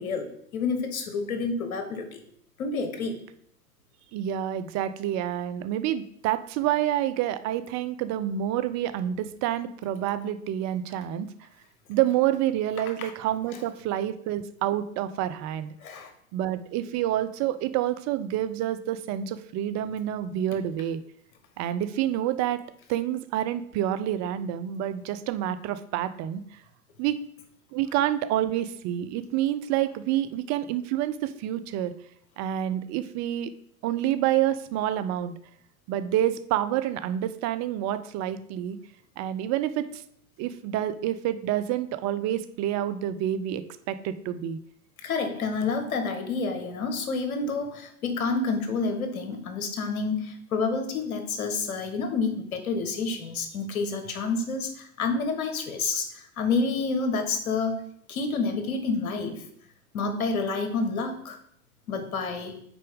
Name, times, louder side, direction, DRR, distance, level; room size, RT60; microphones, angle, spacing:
voice 1, 0.0-2.2 2.6-3.2 13.0-13.1 15.8-16.1 45.0-59.4 59.9-61.4 61.9-62.6, left 4 dB, 75° left, 6 dB, 1.5 m, -29 dB
voice 2, 4.1-11.3 11.9-15.7 16.3-21.0 21.6-22.6 22.9-26.4 27.0-27.2 27.7-31.9 32.4-33.5 33.8-35.3 35.9-38.8 39.2-40.0 40.4-44.6, right 12 dB, 40° right, 12 dB, 0.6 m, -28 dB
6.0 x 4.5 x 5.3 m, 0.69 s
hypercardioid pair, 90°, 43 cm